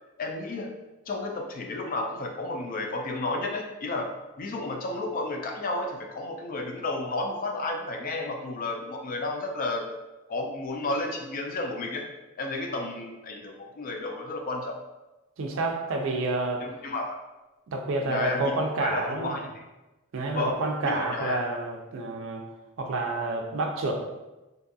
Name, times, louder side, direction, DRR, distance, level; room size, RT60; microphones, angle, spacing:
voice 1, 0.2-0.7 1.1-4.1 4.4-9.9 10.3-12.1 12.4-14.8 16.6-17.2 18.1-18.5 18.8-19.6 20.3-21.4, left 2 dB, 40° left, 3 dB, 0.3 m, -32 dB
voice 2, 15.4-16.6 17.7-19.4 20.1-22.4 22.8-23.9, right 2 dB, 65° right, 2 dB, 0.4 m, -29 dB
2.5 x 2.3 x 2.5 m, 1.1 s
head